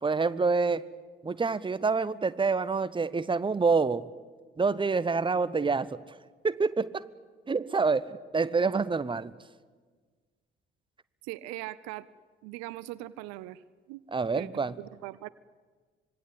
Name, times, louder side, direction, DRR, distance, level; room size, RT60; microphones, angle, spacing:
voice 1, 0.0-0.8 1.2-4.1 4.6-6.1 6.4-7.1 7.5-9.3 14.1-14.7, right 4 dB, 15° right, 15 dB, 1.0 m, -27 dB
voice 2, 11.2-12.1 12.4-13.6 13.9-14.0 14.3-15.3, right 17 dB, 60° right, 18 dB, 0.7 m, -40 dB
26.0 x 20.5 x 8.6 m, 1.5 s
figure-of-eight pair, 45°, 30 cm